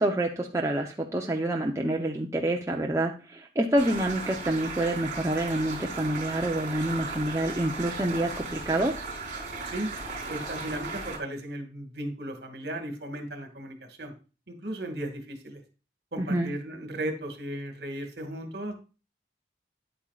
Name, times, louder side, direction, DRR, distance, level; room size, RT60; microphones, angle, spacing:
voice 1, 0.0-8.9 16.2-16.5, right 1 dB, 15° right, 0 dB, 0.7 m, -27 dB
sound 1, 3.8-11.2, right 3 dB, 40° right, 3.8 m, -36 dB
voice 2, 10.3-14.1 14.5-15.6 16.1-18.7, right 1 dB, 60° right, 5 dB, 1.9 m, -36 dB
10.0 x 8.8 x 2.4 m, 0.33 s
head